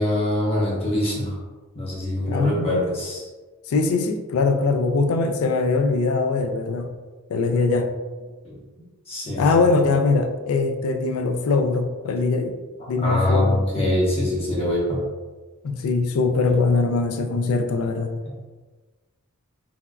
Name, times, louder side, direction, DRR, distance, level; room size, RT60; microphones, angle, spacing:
voice 1, 0.0-1.4 1.7-3.3 8.4-8.6 9.1-9.6 13.0-15.0, left 1 dB, 25° left, -5 dB, 0.7 m, -24 dB
voice 2, 2.3-2.8 3.7-6.9 7.3-7.9 9.4-12.6 12.9-13.6 15.6-18.1, left 3 dB, 70° left, 6 dB, 0.3 m, -22 dB
3.3 x 2.2 x 2.2 m, 1.3 s
head